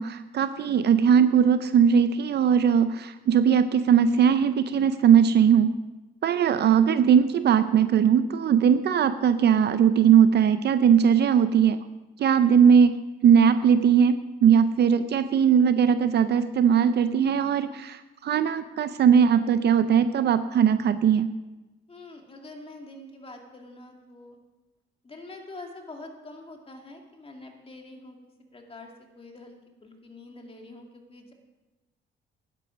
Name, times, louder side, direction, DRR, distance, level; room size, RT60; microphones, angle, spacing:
voice 1, 0.0-5.7 6.2-11.8 12.2-13.0 13.2-14.2 14.4-21.3, right 7 dB, 60° right, 12 dB, 0.5 m, -20 dB
voice 2, 21.9-24.4 25.0-28.2 28.5-31.3, left 2 dB, 30° left, 2 dB, 2.2 m, -45 dB
12.0 x 10.5 x 5.1 m, 1.1 s
cardioid pair, 90°, 20 cm